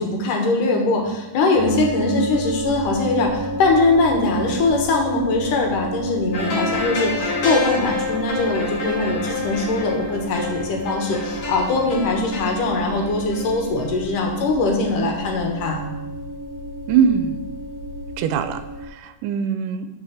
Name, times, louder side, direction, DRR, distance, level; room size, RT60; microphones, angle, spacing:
voice 1, 0.0-15.8, left 3 dB, 75° left, 1 dB, 2.9 m, -21 dB
sound 1, 1.6-18.9, equal, 45° right, 2.5 m, -31 dB
sound 2, 6.3-14.0 14.3-14.4, left 4 dB, 50° left, 2.8 m, -29 dB
voice 2, 15.7-16.2 16.9-17.4 18.2-19.9, right 7 dB, 85° right, 10 dB, 2.1 m, -22 dB
6.9 x 5.6 x 7.0 m, 0.99 s
omnidirectional pair, 3.8 m